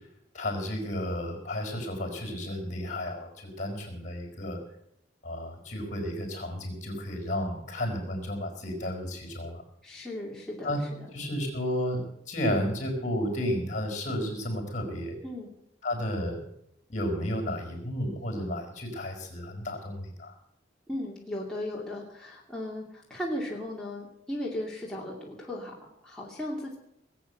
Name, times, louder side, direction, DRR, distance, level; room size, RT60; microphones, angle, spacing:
voice 1, 0.3-4.6 5.2-9.6 10.6-10.8 11.1-15.2 15.8-16.4 16.9-20.3, equal, 40° left, 3 dB, 5.0 m, -32 dB
voice 2, 9.8-11.1 15.2-15.5 20.9-26.8, left 1 dB, 5° left, -5 dB, 2.5 m, -36 dB
19.5 x 8.6 x 7.9 m, 0.78 s
head